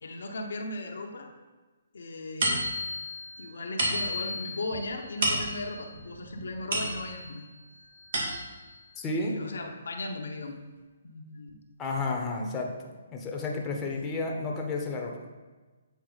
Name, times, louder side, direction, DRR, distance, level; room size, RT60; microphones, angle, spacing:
voice 1, 0.0-1.3 1.9-2.6 3.4-7.4 9.2-10.6 11.0-11.6, left 2 dB, 75° left, 3 dB, 0.9 m, -37 dB
sound 1, 2.4-7.4 7.8-8.7, right 1 dB, 65° right, 1.9 m, -32 dB
voice 2, 9.0-9.4 11.8-15.3, left 3 dB, 20° left, 0 dB, 0.9 m, -32 dB
8.2 x 4.3 x 4.0 m, 1.3 s
hypercardioid pair, 145°, 0 cm